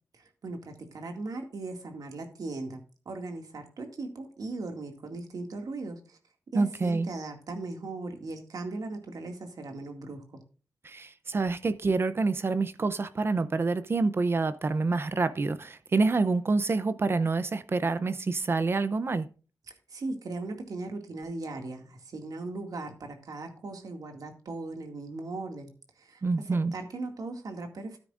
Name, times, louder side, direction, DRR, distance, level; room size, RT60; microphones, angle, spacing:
voice 1, 0.1-2.8 3.1-6.2 6.5-10.2 19.9-25.7 26.0-26.2 26.5-28.0, right 3 dB, 80° right, 2.1 m, -38 dB
voice 2, 6.5-7.1 10.8-19.3 26.2-26.7, right 3 dB, 40° right, 0.5 m, -27 dB
13.0 x 9.8 x 2.5 m
wide cardioid pair, 180°, 6 cm